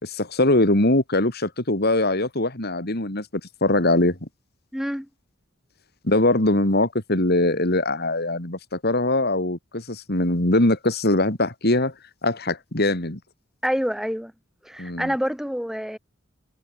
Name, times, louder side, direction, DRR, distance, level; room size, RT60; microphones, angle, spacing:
voice 1, 0.0-4.3 6.0-11.9 12.2-13.2 14.8-15.1, left 2 dB, 55° left, 3.2 m, -22 dB
voice 2, 4.7-5.1 13.6-14.3 14.6-16.0, equal, ahead, 5.4 m, -27 dB
head